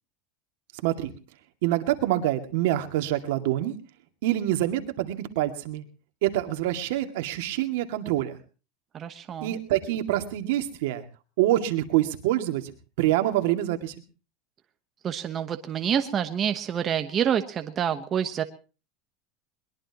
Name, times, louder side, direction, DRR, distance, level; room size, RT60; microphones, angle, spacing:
voice 1, 1.6-3.7 4.2-5.8 6.2-8.3 9.4-11.0 11.4-12.7 13.0-13.9, right 14 dB, 75° right, 6 dB, 2.3 m, -26 dB
voice 2, 8.9-9.6 15.0-18.4, right 8 dB, 30° right, 8 dB, 1.1 m, -27 dB
22.0 x 21.0 x 3.0 m, 0.35 s
supercardioid pair, 150°, 0 cm